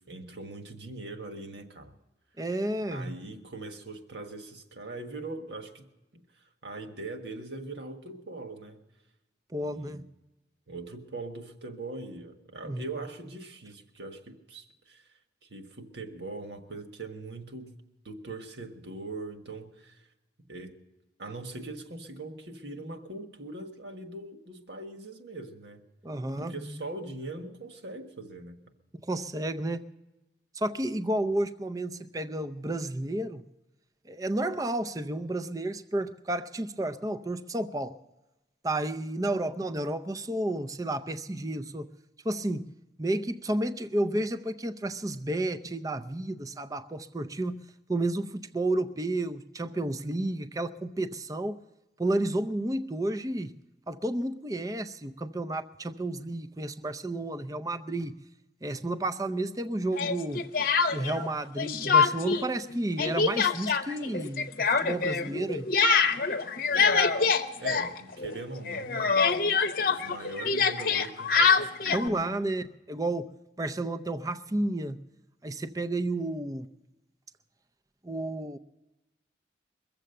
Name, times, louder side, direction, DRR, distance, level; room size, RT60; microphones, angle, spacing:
voice 1, 0.0-1.9 2.9-5.9 6.1-8.8 9.6-10.0 10.7-15.1 15.4-20.1 20.4-20.7 21.2-25.8 26.4-28.7 66.7-67.1 67.6-69.3 69.9-72.4, right 2 dB, 70° right, 5 dB, 1.5 m, -41 dB
voice 2, 2.4-3.2 9.5-10.0 12.6-12.8 26.0-26.5 29.0-29.8 30.5-33.4 34.1-38.0 38.6-41.9 42.2-42.7 43.0-51.6 52.0-53.5 53.9-58.2 58.6-60.5 60.9-64.5 64.8-65.7 71.9-73.3 73.6-75.0 75.4-76.7 78.0-78.6, right 1 dB, 20° right, 11 dB, 0.5 m, -31 dB
Speech, 59.9-61.3 61.6-62.4 62.7-68.4 68.7-72.1, left 5 dB, 50° left, 0.8 m, -25 dB
22.5 x 7.6 x 6.6 m, 1.0 s
head